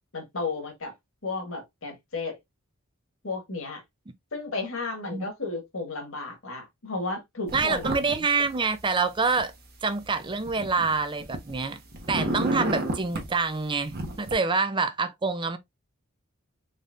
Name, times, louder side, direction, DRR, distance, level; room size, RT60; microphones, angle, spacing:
voice 1, 0.1-0.9 1.2-2.4 3.2-3.8 4.3-8.2, left 3 dB, 70° left, 1.6 m, -33 dB
voice 2, 7.5-9.5 9.8-11.8 12.1-15.6, right 4 dB, 25° right, 0.5 m, -26 dB
sound 1, 7.5-8.1 8.4-9.4 10.0-11.6 11.9-13.3 13.9-14.3, right 1 dB, 50° right, 1.1 m, -31 dB
4.0 x 3.5 x 2.5 m
head